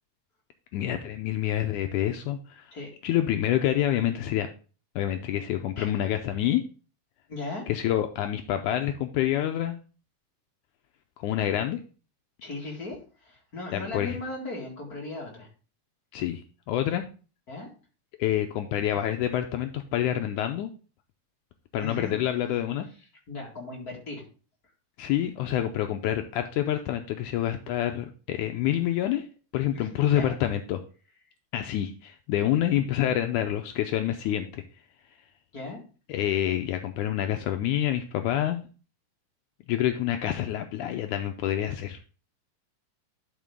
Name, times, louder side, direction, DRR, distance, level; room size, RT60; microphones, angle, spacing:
voice 1, 0.7-2.7 3.0-4.5 5.0-6.6 7.7-9.8 11.2-11.8 13.7-14.2 16.1-16.4 16.7-17.1 18.2-20.7 21.7-22.9 25.0-29.3 29.5-30.8 31.5-34.6 36.1-38.6 39.7-42.0, left 12 dB, 80° left, 6 dB, 1.9 m, -27 dB
voice 2, 7.3-7.7 12.4-15.5 17.5-17.7 21.8-22.2 23.3-24.2 29.7-30.3 35.5-35.8, left 3 dB, 35° left, -1 dB, 1.8 m, -37 dB
11.5 x 5.2 x 3.6 m, 0.36 s
omnidirectional pair, 3.9 m